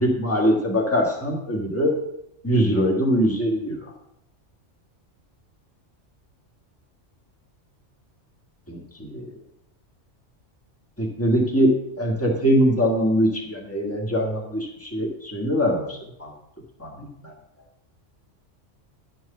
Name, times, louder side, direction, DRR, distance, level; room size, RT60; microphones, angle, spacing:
voice 1, 0.0-2.0 2.4-3.7 8.7-9.3 11.0-16.3 16.8-17.3, equal, 10° left, 0 dB, 1.5 m, -22 dB
11.0 x 4.6 x 6.7 m, 0.81 s
omnidirectional pair, 1.3 m